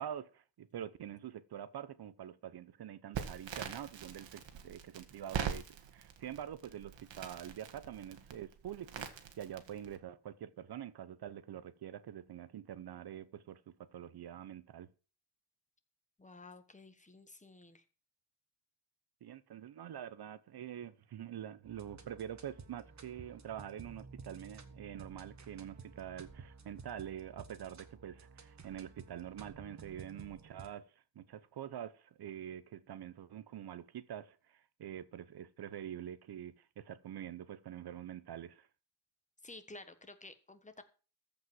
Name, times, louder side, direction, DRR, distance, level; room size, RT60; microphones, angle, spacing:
voice 1, 0.0-5.7 5.9-14.9 19.2-30.9 31.2-38.7, right 10 dB, 60° right, 0.8 m, -46 dB
Crackle, 3.1-10.0, right 8 dB, 85° right, 1.9 m, -43 dB
voice 2, 16.2-17.8 39.4-40.8, left 2 dB, 15° left, 1.4 m, -53 dB
sound 1, 21.6-30.7, right 4 dB, 40° right, 1.6 m, -53 dB
14.5 x 5.3 x 7.6 m
wide cardioid pair, 150°, 43 cm